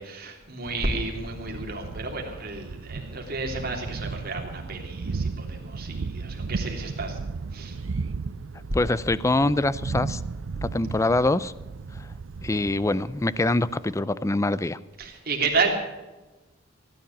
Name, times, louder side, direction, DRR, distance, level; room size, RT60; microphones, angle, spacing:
voice 1, 0.0-7.2 7.5-7.8 15.0-15.7, right 3 dB, 50° right, 1 dB, 3.1 m, -31 dB
Thunder, 0.6-14.0, right 4 dB, 75° right, 0.5 m, -35 dB
voice 2, 8.7-10.2 10.6-11.5 12.4-14.8, left 2 dB, 15° left, 17 dB, 0.4 m, -24 dB
16.0 x 10.5 x 7.2 m, 1.1 s
head